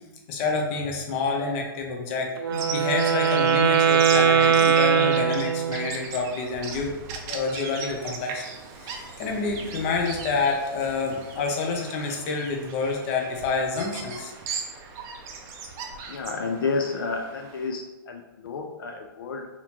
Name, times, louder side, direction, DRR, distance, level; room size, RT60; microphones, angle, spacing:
voice 1, 0.3-7.0 7.2-8.4 8.8-14.3, left 4 dB, 35° left, 1 dB, 0.7 m, -28 dB
Wind instrument woodwind instrument, 2.4-6.0, right 7 dB, 80° right, 0.5 m, -21 dB
Bird vocalization bird call bird song, 2.5-17.7, right 5 dB, 25° right, 0.5 m, -38 dB
voice 2, 16.1-19.5, left 4 dB, 70° left, 3 dB, 0.4 m, -30 dB
4.0 x 2.9 x 2.8 m, 1.1 s
hypercardioid pair, 140°, 12 cm